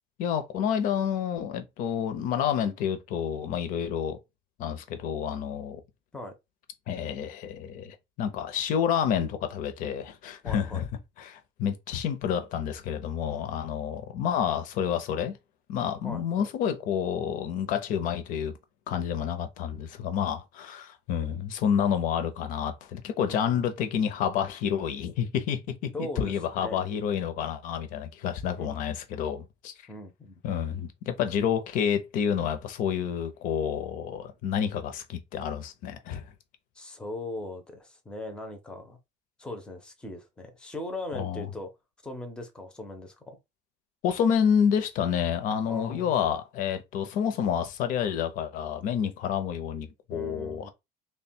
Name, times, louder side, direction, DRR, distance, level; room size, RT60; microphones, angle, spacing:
voice 1, 0.2-4.2 4.6-5.8 6.9-10.9 11.2-15.4 15.7-18.5 18.9-29.7 30.4-36.3 41.1-41.5 44.0-50.7, left 8 dB, 55° left, 0.7 m, -29 dB
voice 2, 10.4-10.8 16.0-16.4 23.3-23.6 25.9-26.3 26.6-26.8 28.6-28.8 29.9-30.4 36.8-39.0 39.4-41.7 42.0-43.4 45.7-46.1 50.1-50.7, left 1 dB, 5° left, 0.6 m, -39 dB
3.3 x 2.2 x 4.3 m
cardioid pair, 170°, 16 cm